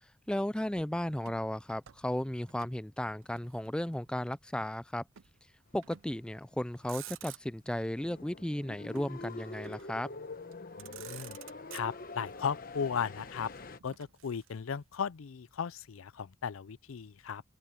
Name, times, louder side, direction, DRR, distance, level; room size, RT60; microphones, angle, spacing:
voice 1, 0.0-5.0 5.7-10.1, left 1 dB, 5° left, 0.3 m, -35 dB
Motor vehicle (road), 1.3-2.8 3.1-4.2 5.2-5.4 5.8-6.3 6.7-7.8 8.9-10.0 10.5-10.6 10.8-12.3 13.2-14.8, right 12 dB, 70° right, 0.5 m, -51 dB
sound 1, 7.9-13.8, left 3 dB, 45° left, 1.1 m, -45 dB
voice 2, 10.8-11.4 11.7-13.5 13.8-17.4, left 6 dB, 85° left, 0.5 m, -36 dB
open air
head